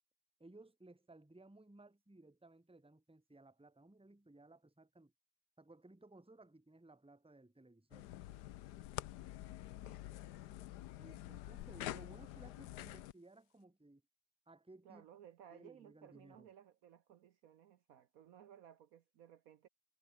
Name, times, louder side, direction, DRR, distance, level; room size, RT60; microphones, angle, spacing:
voice 1, 0.4-5.1 5.6-8.1 11.0-14.0 14.5-15.0 15.5-16.5, right 2 dB, 5° right, 1.3 m, -60 dB
sound 1, 7.9-13.1, left 14 dB, 75° left, 1.2 m, -47 dB
voice 2, 9.8-10.2 14.8-19.7, right 9 dB, 65° right, 1.1 m, -60 dB
omnidirectional pair, 1.8 m